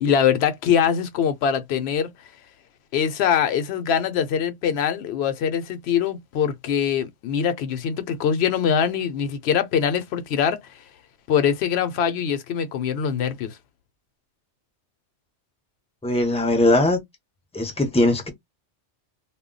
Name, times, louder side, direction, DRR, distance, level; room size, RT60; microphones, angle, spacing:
voice 1, 0.0-2.1 2.9-10.6 11.3-13.6, left 8 dB, 65° left, 0.8 m, -23 dB
voice 2, 16.0-17.0 17.5-18.3, left 1 dB, 10° left, 0.5 m, -20 dB
2.2 x 2.1 x 3.7 m
omnidirectional pair, 1.2 m